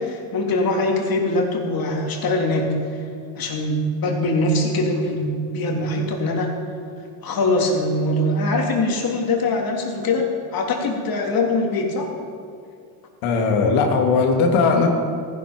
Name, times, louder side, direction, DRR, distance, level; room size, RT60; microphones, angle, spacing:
voice 1, 0.0-2.7 3.4-6.5 7.2-10.2 10.5-12.1, left 2 dB, 45° left, 0 dB, 3.5 m, -22 dB
voice 2, 13.2-14.9, left 4 dB, 75° left, 2 dB, 2.9 m, -18 dB
16.5 x 15.0 x 5.3 m, 2.3 s
cardioid pair, 110°, 48 cm